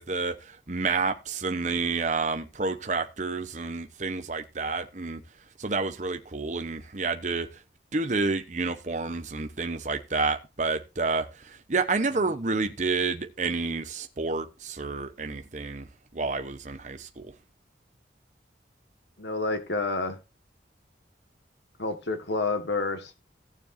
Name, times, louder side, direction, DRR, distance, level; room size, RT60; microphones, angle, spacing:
voice 1, 0.0-5.2 5.6-7.5 7.9-17.3, right 4 dB, 40° right, 0.9 m, -29 dB
voice 2, 19.2-20.2 21.8-23.2, left 3 dB, 70° left, 1.6 m, -29 dB
17.0 x 7.2 x 2.7 m
head